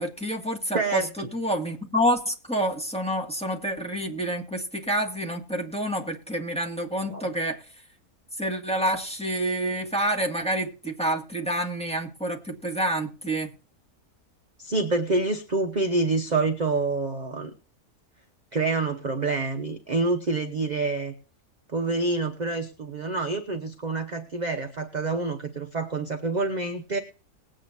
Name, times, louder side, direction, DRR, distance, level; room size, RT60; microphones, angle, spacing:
voice 1, 0.0-7.7 8.4-13.5, right 1 dB, 5° left, 0 dB, 1.8 m, -28 dB
voice 2, 0.7-1.1 7.1-7.3 14.6-17.5 18.5-21.1 21.7-27.0, right 3 dB, 35° right, 5 dB, 0.9 m, -27 dB
20.0 x 8.9 x 2.7 m, 0.37 s
omnidirectional pair, 1.6 m